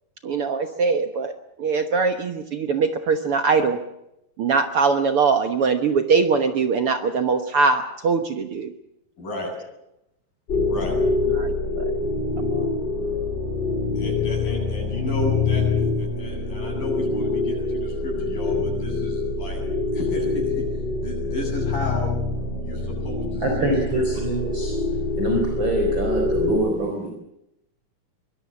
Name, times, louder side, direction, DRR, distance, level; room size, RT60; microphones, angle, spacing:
voice 1, 0.2-1.3 1.6-3.8 4.4-8.7 11.3-11.9 12.4-12.7, right 4 dB, 55° right, 8 dB, 1.6 m, -22 dB
voice 2, 9.2-9.5 10.7-11.0 14.0-19.6 19.9-20.6 21.0-22.1 22.6-24.0, left 1 dB, 75° left, 1 dB, 9.9 m, -33 dB
sound 1, 10.5-26.5, left 3 dB, 30° left, 5.8 m, -25 dB
voice 3, 23.4-24.8 25.2-27.1, right 2 dB, 35° right, 2 dB, 4.5 m, -24 dB
24.0 x 21.0 x 7.1 m, 0.83 s
omnidirectional pair, 3.9 m